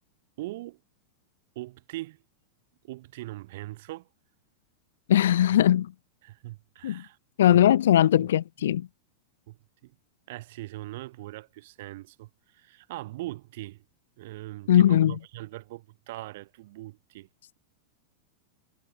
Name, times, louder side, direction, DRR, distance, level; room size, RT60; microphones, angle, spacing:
voice 1, 0.4-0.8 1.5-2.2 2.8-4.1 6.2-7.2 7.5-7.7 8.1-8.3 9.5-9.9 10.3-13.8 14.2-17.3, right 18 dB, 50° right, 3.2 m, -41 dB
voice 2, 5.1-5.9 6.8-7.0 7.4-8.9 14.7-15.2, left 11 dB, 60° left, 0.6 m, -20 dB
figure-of-eight pair, 90°, 0 cm